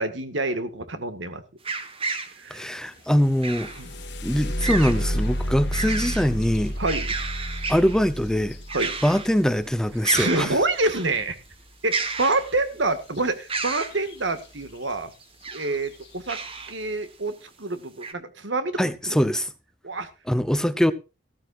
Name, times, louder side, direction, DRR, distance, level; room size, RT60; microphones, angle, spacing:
voice 1, 0.0-1.4 2.4-2.8 3.8-3.9 6.8-7.1 8.7-8.9 10.1-11.4 11.8-15.1 15.5-16.4 16.7-19.2 19.8-20.1, right 2 dB, 80° right, 1.9 m, -27 dB
sound 1, 1.6-2.4 3.4-3.8 4.6-5.0 5.5-6.3 6.7-8.0 8.7-9.4 9.7-9.8 10.0-11.1 11.9-12.8 13.5-14.0 15.2-15.8 16.3-16.7 17.3-17.4 18.0-18.1, right 4 dB, 30° right, 1.4 m, -31 dB
voice 2, 2.5-3.7 4.2-6.7 7.7-8.6 9.0-10.5 18.8-19.5 20.3-20.9, equal, 5° left, 0.7 m, -22 dB
sound 2, 3.3-11.1 13.2-13.3 13.7-14.3 14.9-15.0 15.5-15.9, equal, 65° left, 1.6 m, -31 dB
15.5 x 13.5 x 2.5 m
head